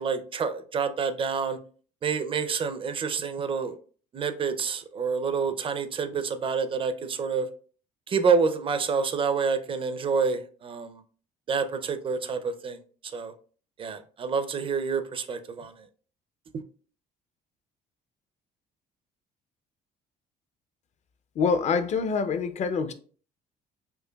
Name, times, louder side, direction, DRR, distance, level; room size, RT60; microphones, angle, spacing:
voice 1, 0.0-1.6 2.0-3.8 4.1-7.5 8.1-11.0 11.5-13.3 13.8-15.8, right 5 dB, 30° right, 0.4 m, -28 dB
voice 2, 21.4-22.9, left 5 dB, 45° left, 0.4 m, -25 dB
4.5 x 2.5 x 2.2 m
cardioid pair, 110°, 17 cm